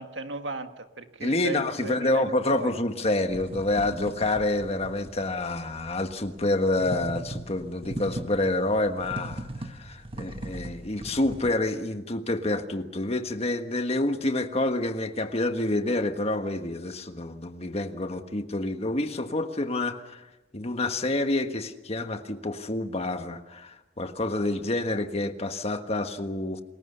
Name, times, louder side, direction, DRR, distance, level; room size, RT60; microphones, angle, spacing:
voice 1, 0.0-2.7, right 2 dB, 70° right, 7 dB, 1.8 m, -36 dB
voice 2, 1.2-20.3 20.5-26.6, left 2 dB, 35° left, 7 dB, 1.5 m, -28 dB
sound 1, 3.3-11.5, right 1 dB, 30° right, 1.5 m, -39 dB
28.5 x 20.5 x 6.8 m, 1.1 s
head